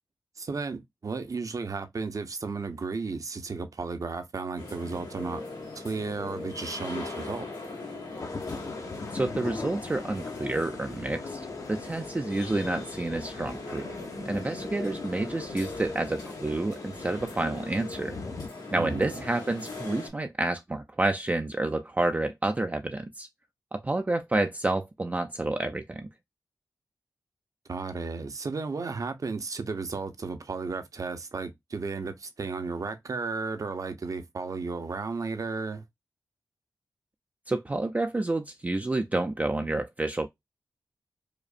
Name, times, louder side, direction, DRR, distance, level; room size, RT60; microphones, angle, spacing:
voice 1, 0.4-5.4 5.7-7.5 18.8-19.2 27.7-35.8, right 4 dB, 50° right, 0.7 m, -34 dB
sound 1, 4.6-20.1, left 3 dB, 85° left, 1.8 m, -39 dB
sound 2, 8.2-18.5, left 3 dB, 50° left, 0.7 m, -42 dB
voice 2, 9.1-13.9 14.3-18.2 18.7-23.3 23.7-26.1 37.5-40.3, right 2 dB, 20° right, 0.4 m, -29 dB
5.0 x 2.1 x 2.5 m
cardioid pair, 70°, 7 cm